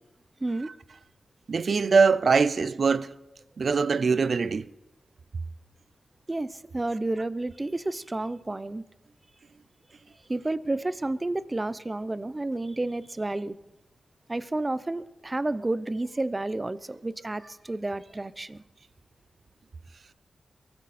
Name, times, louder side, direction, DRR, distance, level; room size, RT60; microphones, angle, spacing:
voice 1, 0.4-0.7 6.3-8.8 10.3-13.6 14.3-18.6, right 2 dB, 25° right, 0.7 m, -31 dB
voice 2, 1.5-3.2 3.6-4.7, right 5 dB, 60° right, 0.6 m, -22 dB
22.5 x 14.0 x 4.3 m
cardioid pair, 75°, 0 cm